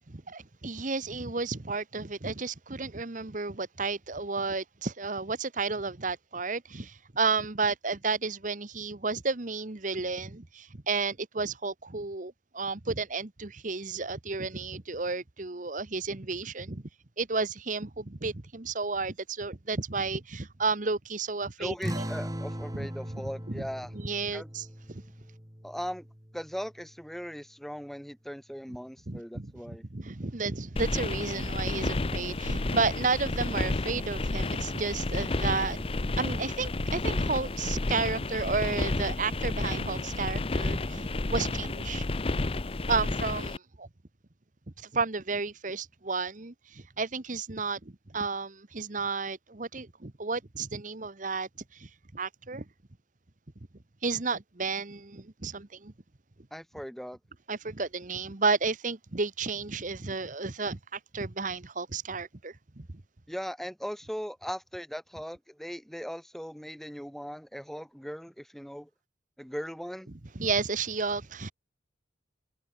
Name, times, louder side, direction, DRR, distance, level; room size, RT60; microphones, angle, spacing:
voice 1, 0.1-16.8 17.2-22.1 22.7-22.9 23.5-23.7 23.9-25.0 29.1-42.0 42.9-43.9 44.8-52.6 54.0-55.9 57.5-63.0 70.3-71.5, right 4 dB, 40° right, 1.1 m, -32 dB
voice 2, 21.6-23.9 24.3-24.5 25.6-26.1 26.3-29.8 56.5-57.2 63.3-68.9 69.4-70.1, equal, ahead, 5.9 m, -39 dB
sound 1, 21.8-26.8, equal, 20° right, 3.3 m, -39 dB
sound 2, 30.8-43.6, left 2 dB, 30° left, 0.6 m, -31 dB
head